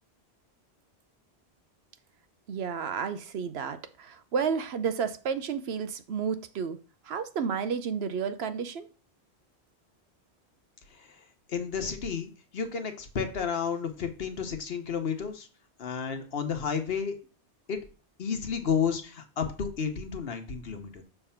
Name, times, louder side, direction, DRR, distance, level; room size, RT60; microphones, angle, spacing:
voice 1, 2.5-6.8 7.1-8.9, right 6 dB, 70° right, 0.9 m, -31 dB
voice 2, 11.5-15.5 15.8-17.1 17.7-17.8 18.2-21.0, left 6 dB, 65° left, 1.2 m, -31 dB
6.8 x 3.4 x 5.7 m
omnidirectional pair, 1.1 m